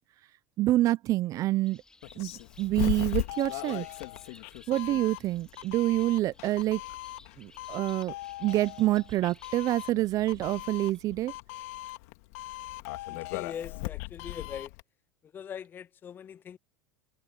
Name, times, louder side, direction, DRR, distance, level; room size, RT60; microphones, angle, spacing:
voice 1, 0.6-1.8 2.2-2.3 2.6-3.9 4.7-6.8 7.4-8.1 8.4-11.3, right 16 dB, 45° right, 0.6 m, -27 dB
Bird, 1.4-11.1, left 2 dB, 10° left, 3.1 m, -58 dB
Doorbell, 2.0-14.8, left 19 dB, 65° left, 2.2 m, -38 dB
voice 2, 13.1-14.7 15.3-16.6, left 8 dB, 25° left, 0.4 m, -41 dB
supercardioid pair, 110°, 8 cm